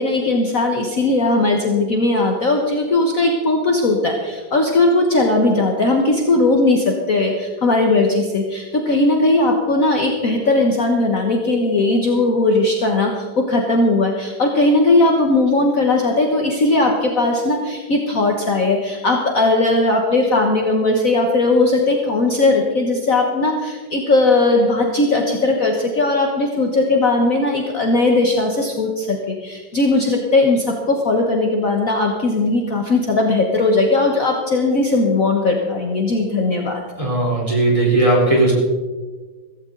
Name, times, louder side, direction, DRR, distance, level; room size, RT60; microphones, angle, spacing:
voice 1, 0.0-36.8, left 2 dB, 45° left, 1 dB, 1.5 m, -18 dB
voice 2, 37.0-38.5, right 2 dB, 15° right, -3 dB, 4.1 m, -16 dB
16.0 x 15.5 x 3.9 m, 1.4 s
omnidirectional pair, 2.2 m